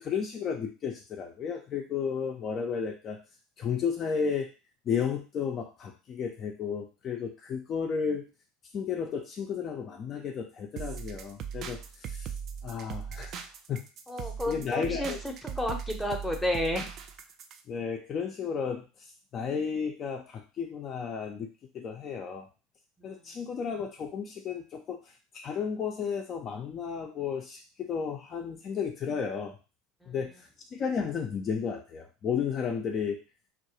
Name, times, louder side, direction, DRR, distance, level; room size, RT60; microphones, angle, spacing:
voice 1, 0.0-3.2 3.6-4.5 4.9-8.3 8.7-12.3 12.6-13.4 13.7-13.8 14.2-15.2 17.7-18.8 19.3-21.5 21.7-22.5 23.0-29.6 30.1-33.2, left 6 dB, 40° left, 2 dB, 0.4 m, -33 dB
sound 1, 10.8-17.6, right 7 dB, 50° right, 0.3 m, -39 dB
voice 2, 14.1-16.9 23.0-23.2 30.0-30.1, left 1 dB, 5° left, 2 dB, 0.6 m, -32 dB
2.3 x 2.0 x 2.8 m, 0.32 s
hypercardioid pair, 80°, 0 cm